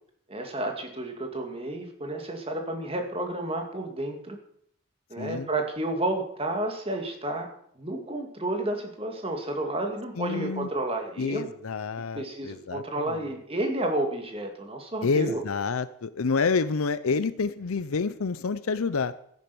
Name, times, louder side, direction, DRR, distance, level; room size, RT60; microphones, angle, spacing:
voice 1, 0.3-4.4 5.1-7.5 7.8-11.5 12.1-15.4, right 1 dB, 25° right, 4 dB, 2.2 m, -31 dB
voice 2, 5.2-5.5 10.2-10.7 11.2-13.2 15.0-19.1, left 4 dB, 75° left, 14 dB, 0.6 m, -28 dB
13.5 x 10.5 x 7.0 m, 0.67 s
head